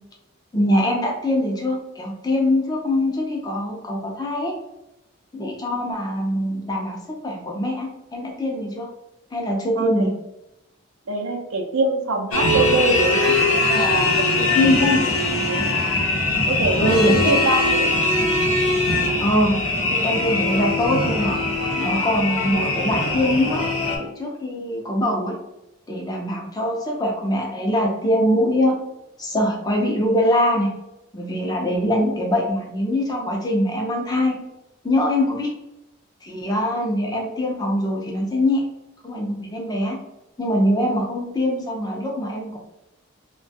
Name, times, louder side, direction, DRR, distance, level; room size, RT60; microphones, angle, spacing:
voice 1, 0.5-4.6 5.3-8.9 9.3-10.1 14.5-15.0 16.8-17.3 19.2-21.4 21.8-23.6 24.0-25.3 25.9-28.8 29.2-30.7 31.1-34.4 34.8-35.5 36.2-38.6 39.0-40.0 40.4-42.6, left 1 dB, 20° left, 0 dB, 0.5 m, -23 dB
voice 2, 9.8-10.1 11.1-14.9 15.5-15.8 16.5-18.1, right 2 dB, 85° right, 1 dB, 0.5 m, -25 dB
sound 1, 12.3-24.0, left 2 dB, 85° left, 0.7 m, -21 dB
3.0 x 2.2 x 2.7 m, 0.91 s
head